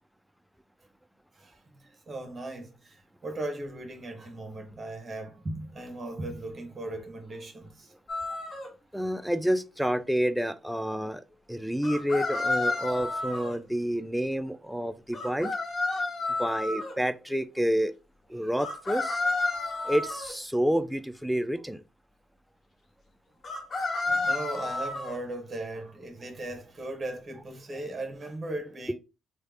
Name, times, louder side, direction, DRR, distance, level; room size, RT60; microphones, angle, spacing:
voice 1, 1.4-7.9 8.2-8.4 8.9-9.0 18.4-18.5 24.1-28.9, right 2 dB, 40° right, 0.9 m, -38 dB
sound 1, 8.1-8.7 11.8-13.6 15.1-16.9 18.6-20.3 23.4-25.2, left 3 dB, 50° left, 0.9 m, -30 dB
voice 2, 8.9-11.2 11.5-15.5 16.4-17.9 18.3-19.2 19.8-21.8, equal, 5° right, 0.4 m, -29 dB
3.3 x 2.1 x 3.2 m
supercardioid pair, 60°, 0 cm